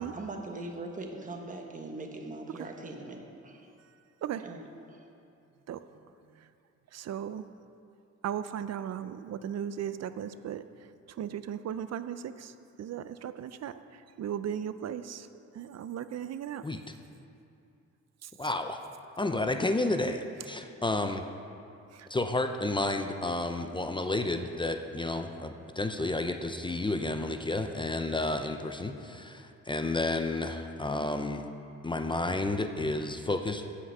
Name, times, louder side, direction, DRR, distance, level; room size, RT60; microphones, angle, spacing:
voice 1, 0.1-3.7 4.4-5.1, right 2 dB, 25° right, 2 dB, 1.2 m, -41 dB
voice 2, 6.9-7.4 8.2-10.6 11.2-12.5 12.8-13.7 14.2-15.3 15.5-16.6 18.2-18.3 21.9-22.1, right 9 dB, 60° right, 12 dB, 0.5 m, -36 dB
voice 3, 16.6-16.9 18.4-18.8 19.2-21.2 22.1-31.4 31.8-33.7, left 2 dB, 15° left, 6 dB, 0.5 m, -31 dB
16.0 x 5.9 x 5.5 m, 2.6 s
cardioid pair, 115°, 30 cm